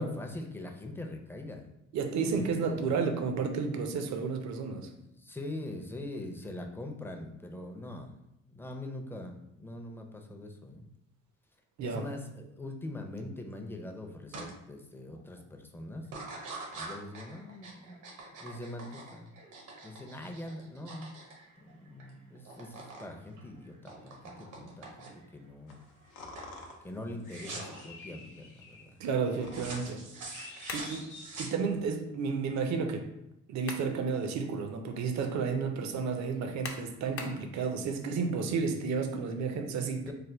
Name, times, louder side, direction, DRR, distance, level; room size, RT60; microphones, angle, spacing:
voice 1, 0.0-1.7 2.3-2.9 5.1-8.1 8.5-10.9 11.8-16.1 16.7-18.0 18.4-19.3 19.8-21.1 21.6-25.8 26.8-28.9 40.1-40.2, left 1 dB, 5° left, 3 dB, 0.5 m, -42 dB
voice 2, 1.9-4.9 11.8-12.0 29.0-30.0 30.7-31.1 31.4-33.1 33.5-40.0, right 5 dB, 65° right, 5 dB, 0.6 m, -32 dB
sound 1, 14.3-14.5 15.0-15.4 16.0-22.1 22.3-23.1 23.4-25.3 25.8-26.1 26.3-26.6 27.2-27.9 29.5-32.0, right 3 dB, 85° right, 1.0 m, -45 dB
sound 2, 25.7-31.9, left 3 dB, 85° left, 0.7 m, -50 dB
sound 3, 30.7-31.0 33.3-34.0 34.4-34.5 36.6-37.5, left 4 dB, 50° left, 0.6 m, -40 dB
3.3 x 2.2 x 4.3 m, 0.83 s
cardioid pair, 90°, 30 cm